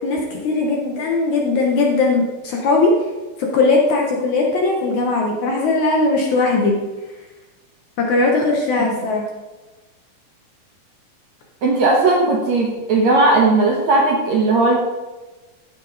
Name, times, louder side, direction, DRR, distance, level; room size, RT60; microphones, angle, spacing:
voice 1, 0.0-2.9 3.4-6.8 8.0-9.3, left 3 dB, 65° left, 0 dB, 2.0 m, -19 dB
voice 2, 11.6-14.8, right 3 dB, 65° right, 0 dB, 1.9 m, -16 dB
14.5 x 6.2 x 3.9 m, 1.2 s
omnidirectional pair, 4.3 m